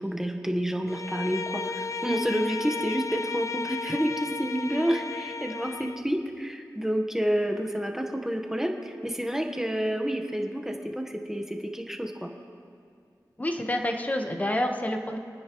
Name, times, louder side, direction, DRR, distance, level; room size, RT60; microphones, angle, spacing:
voice 1, 0.0-12.3, equal, 5° right, 3 dB, 1.2 m, -29 dB
Bowed string instrument, 0.9-6.1, left 4 dB, 45° left, 0.4 m, -34 dB
voice 2, 13.4-15.2, left 1 dB, 20° left, 3 dB, 1.2 m, -28 dB
28.0 x 9.6 x 3.1 m, 2.4 s
wide cardioid pair, 80°, 7 cm